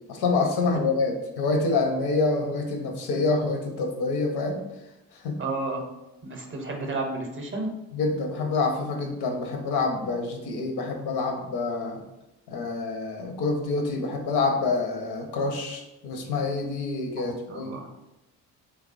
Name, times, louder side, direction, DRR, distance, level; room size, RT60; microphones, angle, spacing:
voice 1, 0.1-4.6 5.2-5.4 7.9-12.0 12.5-17.8, left 3 dB, 70° left, 3 dB, 0.6 m, -27 dB
voice 2, 5.4-5.8 6.2-7.7 17.2-17.9, right 2 dB, 30° right, 1 dB, 0.6 m, -32 dB
3.1 x 2.1 x 2.4 m, 0.95 s
supercardioid pair, 60°, 41 cm